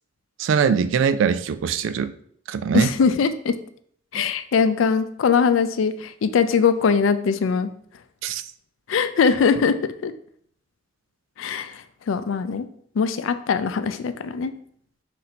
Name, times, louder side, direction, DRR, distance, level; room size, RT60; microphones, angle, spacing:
voice 1, 0.4-2.1 2.5-2.9 8.2-8.4, right 6 dB, 80° right, 13 dB, 0.3 m, -21 dB
voice 2, 2.7-3.6 4.1-7.7 8.9-9.8 10.0-10.1 11.4-12.7 13.0-14.5, left 5 dB, 90° left, 11 dB, 0.4 m, -21 dB
4.2 x 2.6 x 4.0 m, 0.62 s
head